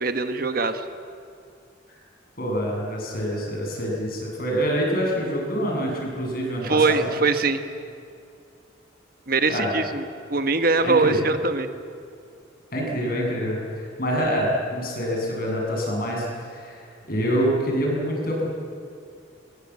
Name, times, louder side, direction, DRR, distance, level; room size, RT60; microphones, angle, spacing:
voice 1, 0.0-0.8 6.6-7.6 9.3-10.0 10.3-11.7, right 3 dB, 50° right, 8 dB, 1.3 m, -22 dB
voice 2, 2.4-7.0 9.5-9.7 10.8-11.3 12.7-18.5, equal, 50° left, -1 dB, 7.4 m, -26 dB
24.5 x 22.0 x 8.7 m, 2.5 s
head